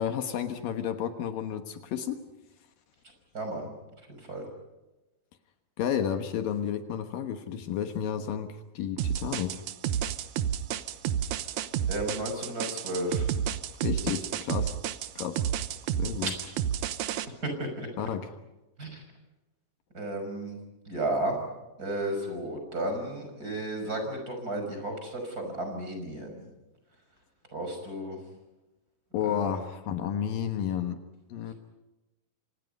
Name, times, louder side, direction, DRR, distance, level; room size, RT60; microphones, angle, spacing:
voice 1, 0.0-2.2 5.8-9.6 13.8-14.8 15.2-15.4 16.0-16.3 18.0-18.3 29.1-31.0 31.3-31.5, left 9 dB, 70° left, 7 dB, 3.0 m, -31 dB
voice 2, 3.3-3.7 4.1-4.5 11.9-13.3 17.4-17.9 18.8-19.0 19.9-20.6 20.9-21.4 21.8-26.4 27.5-28.2 29.2-29.6, right 1 dB, 25° right, 4 dB, 6.1 m, -33 dB
sound 1, 9.0-17.3, right 9 dB, 70° right, 2.0 m, -30 dB
29.0 x 26.5 x 5.4 m, 1.0 s
omnidirectional pair, 4.2 m